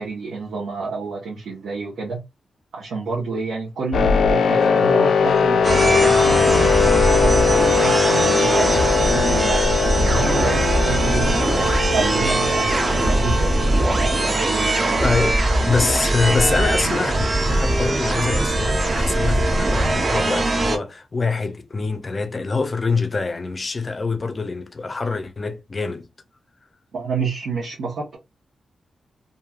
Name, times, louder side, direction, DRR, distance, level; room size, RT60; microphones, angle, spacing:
voice 1, 0.0-2.2 2.7-8.9 9.1-11.3 11.9-15.1 26.9-28.2, right 4 dB, 75° right, 1.0 m, -29 dB
sound 1, 3.9-15.3, left 6 dB, 85° left, 0.4 m, -21 dB
sound 2, 5.6-20.8, right 2 dB, 30° right, 0.6 m, -20 dB
voice 2, 15.0-26.1, left 4 dB, 30° left, 0.5 m, -25 dB
3.0 x 2.6 x 2.3 m
wide cardioid pair, 155°, 0 cm